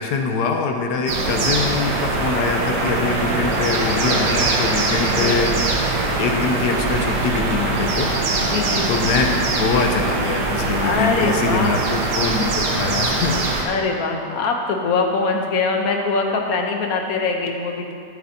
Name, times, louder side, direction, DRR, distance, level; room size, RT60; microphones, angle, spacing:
voice 1, 0.0-5.6 6.2-8.1 8.9-13.4, left 4 dB, 80° left, 4 dB, 1.3 m, -23 dB
sound 1, 1.1-13.6, right 2 dB, 90° right, 1.6 m, -22 dB
voice 2, 5.1-5.5 8.4-8.9 10.8-11.7 13.7-17.9, left 4 dB, 65° left, 2 dB, 1.2 m, -23 dB
12.0 x 7.8 x 2.8 m, 2.3 s
omnidirectional pair, 1.8 m